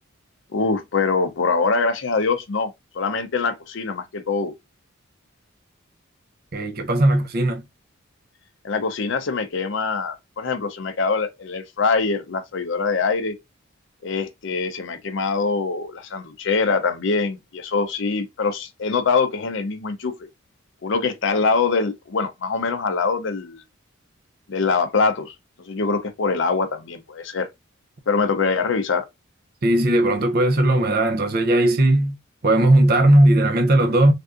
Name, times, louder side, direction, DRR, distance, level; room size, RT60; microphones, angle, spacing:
voice 1, 0.5-4.5 8.6-13.4 14.0-20.1 20.8-23.6 24.5-27.5 28.1-29.1, left 4 dB, 60° left, 0.5 m, -23 dB
voice 2, 6.5-7.7 29.6-32.2 32.4-34.1, right 1 dB, 45° right, 0.6 m, -17 dB
3.4 x 2.6 x 2.4 m
head